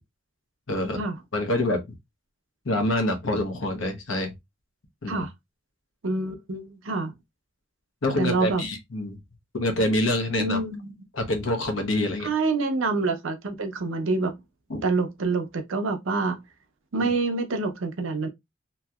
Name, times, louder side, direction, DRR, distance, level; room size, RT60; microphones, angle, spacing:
voice 1, 0.7-1.0 1.3-1.8 2.6-4.3 5.0-5.2 8.0-9.2 9.5-10.6 11.1-12.3 14.7-14.8 17.0-17.1, left 1 dB, 80° left, 1.0 m, -26 dB
voice 2, 6.0-7.1 8.2-8.6 10.4-11.0 12.2-14.3 14.8-16.4 16.9-18.3, right 3 dB, 85° right, 0.6 m, -26 dB
3.0 x 2.7 x 2.3 m
head